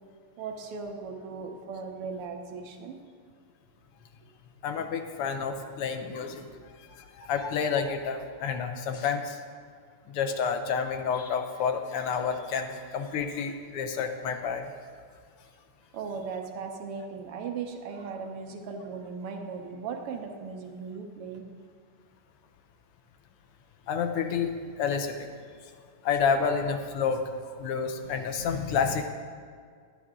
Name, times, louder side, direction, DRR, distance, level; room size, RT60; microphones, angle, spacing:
voice 1, 0.4-3.0 6.5-6.6 6.9-7.0 15.9-21.5, right 5 dB, 85° right, 3 dB, 1.9 m, -38 dB
voice 2, 4.6-6.5 7.0-9.4 10.1-14.7 23.9-25.3 26.0-27.3 27.6-29.1, left 6 dB, 85° left, 6 dB, 1.8 m, -29 dB
11.5 x 11.0 x 3.7 m, 2.1 s
omnidirectional pair, 2.4 m